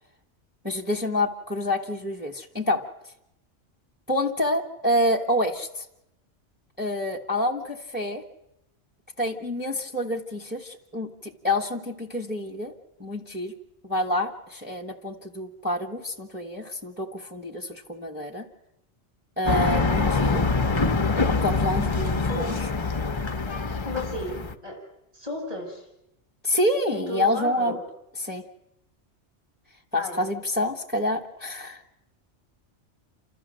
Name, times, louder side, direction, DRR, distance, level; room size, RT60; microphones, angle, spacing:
voice 1, 0.6-2.8 4.1-5.8 6.8-8.2 9.2-12.7 13.0-13.5 13.8-18.4 19.4-20.4 21.4-22.5 26.4-27.8 28.2-28.4 29.9-31.8, left 1 dB, 10° right, 1 dB, 1.4 m, -27 dB
sound 1, 19.5-24.5, left 4 dB, 30° left, 0.7 m, -24 dB
voice 2, 23.8-24.4 24.6-24.8 25.1-25.9 26.9-27.8 29.9-30.2, left 1 dB, 30° right, -1 dB, 7.1 m, -33 dB
29.0 x 13.5 x 7.6 m, 0.84 s
omnidirectional pair, 1.2 m